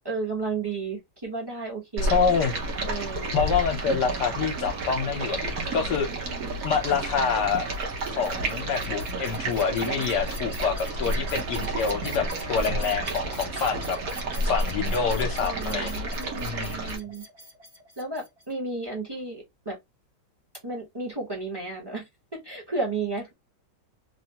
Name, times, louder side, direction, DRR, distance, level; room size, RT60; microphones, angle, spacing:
voice 1, 0.0-2.2 2.9-3.5 5.5-6.6 10.1-10.5 12.5-13.0 15.4-17.2 18.0-19.8 20.6-22.0 22.3-23.3, right 3 dB, 15° right, 0.9 m, -34 dB
Stream, 2.0-17.0, right 2 dB, 60° right, 1.3 m, -31 dB
voice 2, 2.1-2.5 3.3-6.3 6.6-7.7 8.2-14.0 14.4-16.1 16.4-16.9, left 6 dB, 75° left, 1.3 m, -27 dB
sound 1, 7.5-18.5, equal, 35° right, 1.4 m, -45 dB
3.3 x 2.4 x 2.8 m
omnidirectional pair, 1.9 m